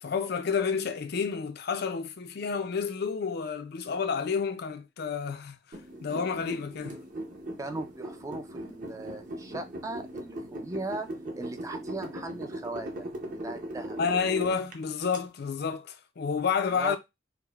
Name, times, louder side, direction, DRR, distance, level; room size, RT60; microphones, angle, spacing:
voice 1, 0.0-7.0 14.0-17.0, left 6 dB, 55° left, 0.5 m, -30 dB
sound 1, 5.7-15.2, right 1 dB, 45° right, 0.7 m, -39 dB
voice 2, 7.6-11.1 11.4-13.1 13.4-14.0 16.7-17.0, right 2 dB, 15° right, 0.4 m, -38 dB
4.6 x 2.1 x 2.3 m
head